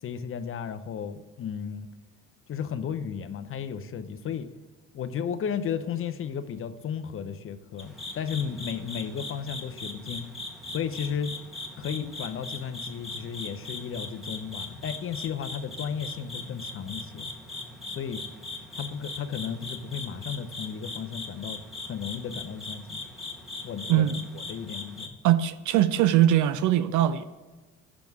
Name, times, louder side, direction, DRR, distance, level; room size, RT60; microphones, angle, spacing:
voice 1, 0.0-1.9 2.5-4.5 4.9-10.3 10.7-11.4 11.8-17.3 18.0-18.2 18.7-23.0 23.6-24.1 24.3-25.2, left 7 dB, 40° left, 10 dB, 0.6 m, -34 dB
sound 1, 7.8-25.1, left 2 dB, ahead, 1.3 m, -40 dB
voice 2, 23.9-24.2 25.2-27.2, right 12 dB, 60° right, 13 dB, 0.5 m, -21 dB
6.1 x 5.2 x 4.6 m, 1.2 s
supercardioid pair, 95°, 35 cm